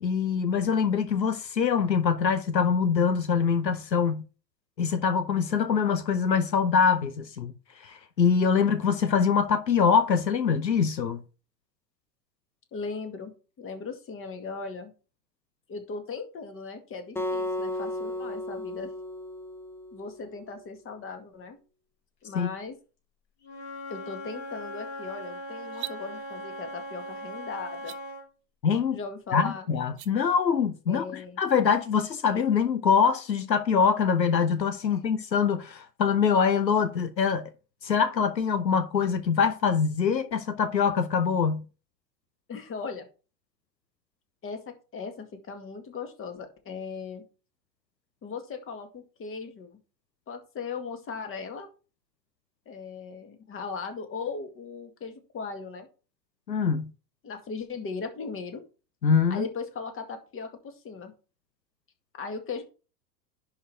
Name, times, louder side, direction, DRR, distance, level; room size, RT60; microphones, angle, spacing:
voice 1, 0.0-4.2 4.8-7.5 7.8-11.2 22.3-22.5 28.6-29.0 29.3-37.5 37.8-41.6 56.5-56.9 59.0-59.5, left 6 dB, 85° left, 0.9 m, -24 dB
voice 2, 12.7-13.3 13.6-14.9 15.7-18.9 19.9-21.6 22.2-22.8 23.9-27.9 28.9-29.7 30.9-31.4 34.9-35.0 42.5-43.1 44.4-47.2 48.2-49.7 50.3-51.7 52.7-55.9 57.2-58.6 59.3-61.1 62.1-62.6, left 4 dB, 25° left, 2.0 m, -38 dB
Acoustic guitar, 17.2-20.4, left 1 dB, 5° left, 0.7 m, -34 dB
Wind instrument woodwind instrument, 23.4-28.3, equal, 45° left, 4.1 m, -39 dB
sound 1, 25.6-26.0 27.7-28.0 29.8-30.1, right 16 dB, 55° right, 0.9 m, -38 dB
11.0 x 4.6 x 4.5 m
figure-of-eight pair, 90°, 50 cm